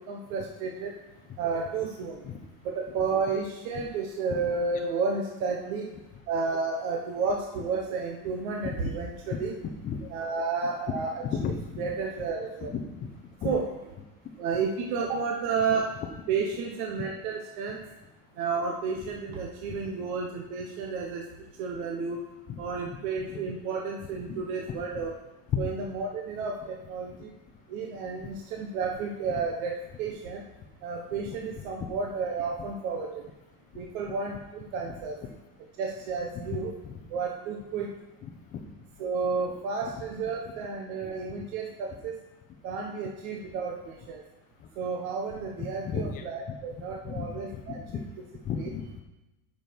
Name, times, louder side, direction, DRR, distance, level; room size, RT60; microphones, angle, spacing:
voice 1, 0.1-0.9 1.4-2.2 2.7-5.9 6.3-9.5 10.1-11.2 11.8-12.7 13.4-13.6 14.4-15.9 16.3-17.8 18.4-21.2 21.6-22.2 22.6-25.1 25.6-27.3 27.7-30.4 30.8-33.2 33.7-35.2 35.8-36.7 37.1-37.9 39.0-42.2 42.6-44.2 44.8-47.8 48.6-48.7, right 5 dB, 60° right, 1 dB, 1.3 m, -31 dB
voice 2, 11.3-11.9 12.7-12.8 13.4-13.5 22.5-22.6 23.3-23.4 24.3-24.4 34.9-35.0 36.5-36.6 36.8-37.0 38.2-38.6 39.5-39.6 41.4-41.5 45.8-46.2 47.0-48.0 48.5-49.0, left 6 dB, 15° left, 3 dB, 0.6 m, -34 dB
8.9 x 6.0 x 5.2 m, 0.97 s
cardioid pair, 175°, 47 cm